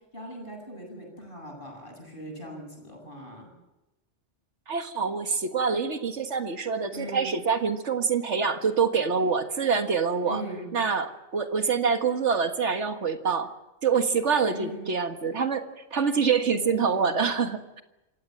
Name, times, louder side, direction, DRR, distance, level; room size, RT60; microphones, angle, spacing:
voice 1, 0.1-3.5 6.9-7.4 10.2-10.7 14.5-14.9 16.4-17.2, right 1 dB, 50° left, 1 dB, 8.3 m, -40 dB
voice 2, 4.7-10.4 10.7-13.5 13.8-17.8, right 5 dB, 85° right, 7 dB, 1.9 m, -26 dB
27.5 x 16.0 x 7.8 m, 0.99 s
omnidirectional pair, 1.2 m